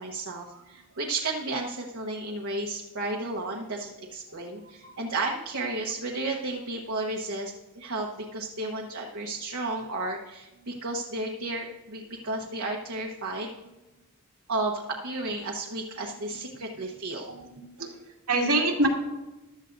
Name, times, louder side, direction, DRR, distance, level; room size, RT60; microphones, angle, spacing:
voice 1, 0.0-13.5 14.5-17.3, right 2 dB, 65° right, 0 dB, 1.1 m, -33 dB
voice 2, 16.0-16.8 17.3-17.9 18.3-18.9, right 2 dB, 90° right, -2 dB, 2.3 m, -28 dB
15.0 x 12.0 x 2.6 m, 1.1 s
head